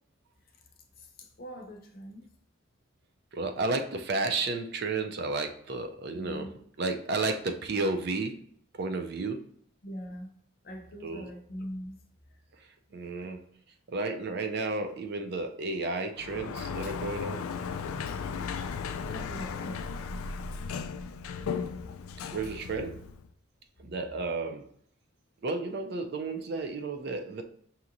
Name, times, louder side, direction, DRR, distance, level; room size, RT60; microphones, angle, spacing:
voice 1, 1.0-2.3 6.1-6.6 9.8-10.3 10.6-11.9 13.1-13.3 19.1-19.8, equal, 45° left, 3 dB, 0.6 m, -42 dB
voice 2, 3.3-6.5 6.8-8.4 8.8-9.5 11.0-11.3 12.9-13.4 13.9-17.4 21.5-21.7 22.3-23.0 23.8-24.7 25.4-27.4, right 3 dB, 50° right, 6 dB, 0.4 m, -32 dB
Sliding door, 16.1-23.3, left 6 dB, 85° left, 0.3 m, -36 dB
5.8 x 2.8 x 2.5 m, 0.63 s
head